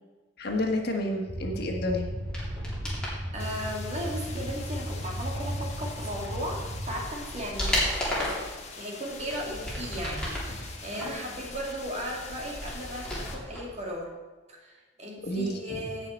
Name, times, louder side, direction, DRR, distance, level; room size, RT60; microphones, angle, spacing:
voice 1, 0.4-2.1 15.2-15.8, left 1 dB, 55° left, 1 dB, 1.6 m, -30 dB
sound 1, 1.3-7.1, equal, 55° right, 2.2 m, -35 dB
sound 2, 2.2-3.2 6.2-6.3 6.8-8.5 9.1-10.5 10.9-13.6 13.9-14.0, equal, 5° left, 3.3 m, -33 dB
voice 2, 3.3-8.5 8.8-14.1 14.5-16.1, equal, 35° right, -1 dB, 2.5 m, -36 dB
sound 3, 3.4-13.3, left 4 dB, 35° left, 1.5 m, -44 dB
17.0 x 6.0 x 4.4 m, 1.3 s
head